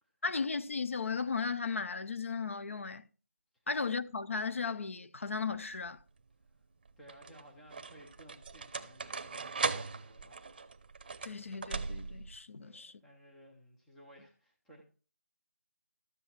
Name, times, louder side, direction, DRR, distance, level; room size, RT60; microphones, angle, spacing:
voice 1, 0.2-3.1 3.7-6.0 11.2-13.0, left 5 dB, 50° left, 0.7 m, -36 dB
sound 1, 5.5-6.0 6.9-12.4, right 4 dB, 35° right, 0.7 m, -39 dB
voice 2, 7.0-10.5 12.6-14.8, right 1 dB, ahead, 0.5 m, -57 dB
13.0 x 7.7 x 4.4 m
figure-of-eight pair, 175°, 9 cm